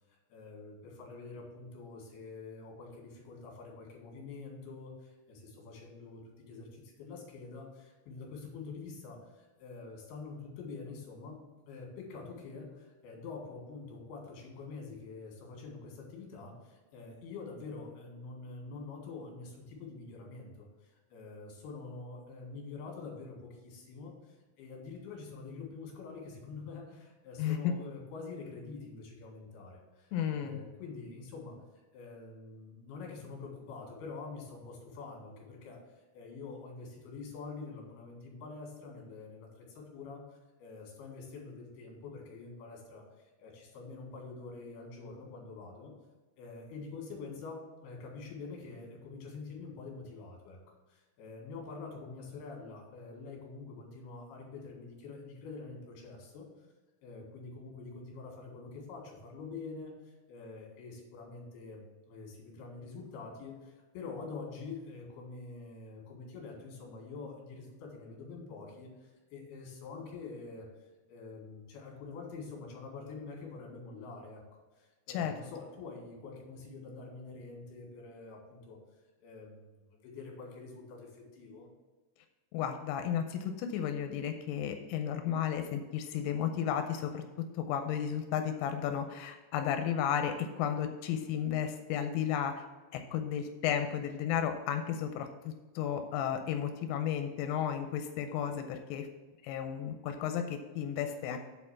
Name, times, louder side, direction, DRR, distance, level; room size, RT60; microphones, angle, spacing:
voice 1, 0.3-11.4 11.7-31.6 31.9-43.1 43.4-45.9 46.4-56.5 57.0-70.7 71.1-78.8 79.2-81.7, left 4 dB, 60° left, -1 dB, 3.6 m, -46 dB
voice 2, 27.4-27.7 30.1-30.6 75.1-75.3 82.5-87.2 87.6-92.6 92.9-99.1 99.4-101.4, left 9 dB, 90° left, 6 dB, 3.2 m, -33 dB
8.0 x 4.4 x 7.0 m, 1.3 s
omnidirectional pair, 5.7 m